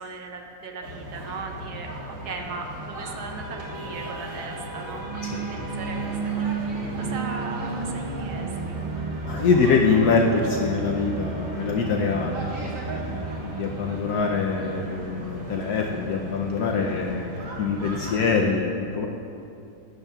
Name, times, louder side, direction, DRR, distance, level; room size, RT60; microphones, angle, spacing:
voice 1, 0.0-1.9 2.2-5.1 5.5-8.8, right 4 dB, 70° right, 3 dB, 1.3 m, -38 dB
sound 1, 0.8-18.3, right 1 dB, 50° right, 1.8 m, -37 dB
sound 2, 5.0-15.0, right 4 dB, 90° right, 0.4 m, -33 dB
voice 2, 9.2-12.5 12.9-19.1, left 4 dB, 75° left, 1 dB, 1.1 m, -24 dB
18.0 x 7.1 x 2.3 m, 2.6 s
omnidirectional pair, 1.8 m